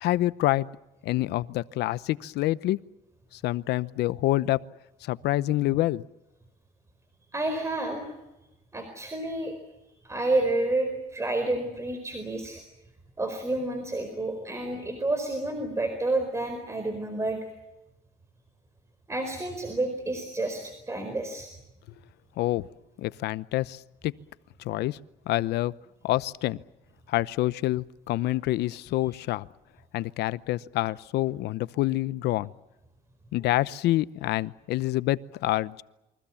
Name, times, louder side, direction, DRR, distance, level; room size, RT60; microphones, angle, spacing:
voice 1, 0.0-0.7 1.0-2.8 3.4-4.6 5.0-6.0 22.4-22.7 23.0-24.1 24.6-25.0 25.3-25.7 26.0-26.6 27.1-29.5 29.9-32.5 33.3-35.8, left 16 dB, 80° left, 17 dB, 0.8 m, -27 dB
voice 2, 7.3-8.1 8.7-9.5 10.0-12.6 13.2-17.4 19.1-21.5, right 2 dB, 15° right, 7 dB, 4.5 m, -29 dB
28.5 x 23.5 x 7.2 m, 0.96 s
cardioid pair, 110°, 17 cm